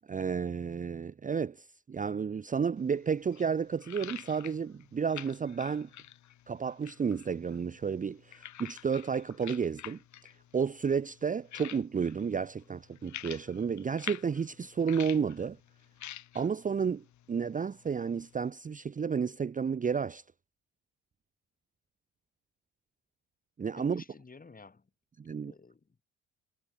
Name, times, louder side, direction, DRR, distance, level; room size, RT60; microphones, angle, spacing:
voice 1, 0.1-5.9 6.5-10.0 10.5-15.6 16.3-20.2 23.6-24.0 25.2-25.5, right 6 dB, 25° right, 0.6 m, -32 dB
sound 1, 2.8-18.5, left 12 dB, 70° left, 2.2 m, -49 dB
voice 2, 23.7-24.9 25.4-26.0, left 4 dB, 30° left, 7.1 m, -52 dB
cardioid pair, 90°, 30 cm